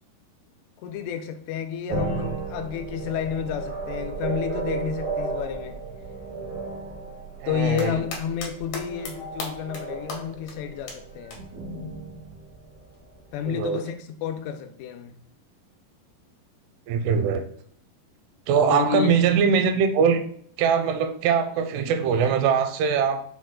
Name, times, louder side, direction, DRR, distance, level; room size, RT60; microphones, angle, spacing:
voice 1, 0.8-5.8 7.5-11.5 13.3-15.1 18.7-19.2, left 9 dB, 90° left, 2.7 m, -30 dB
sound 1, 1.9-13.3, right 3 dB, 70° right, 0.9 m, -34 dB
voice 2, 7.4-8.0 13.5-13.8 16.9-17.5 18.5-20.2 20.6-23.2, right 6 dB, 85° right, 2.6 m, -22 dB
sound 2, 7.5-8.5 8.7-9.1 9.4-9.8 10.1-10.2 10.5-10.6 10.9-11.0 11.3-11.4 12.9-13.0, left 3 dB, 75° left, 1.9 m, -34 dB
6.1 x 2.3 x 3.6 m
omnidirectional pair, 4.7 m